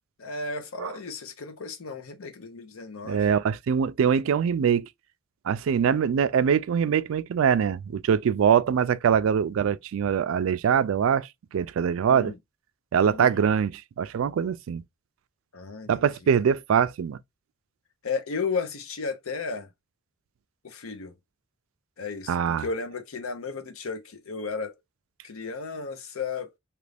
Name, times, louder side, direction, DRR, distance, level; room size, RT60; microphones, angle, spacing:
voice 1, 0.2-3.4 12.1-12.4 13.0-13.4 15.5-16.1 18.0-19.7 20.6-21.1 22.0-24.7 25.2-26.5, left 4 dB, 85° left, 0.7 m, -34 dB
voice 2, 3.1-4.9 5.5-11.3 11.5-12.3 12.9-14.8 15.9-17.2 22.3-22.7, right 7 dB, 75° right, 0.3 m, -23 dB
2.9 x 2.4 x 3.3 m
head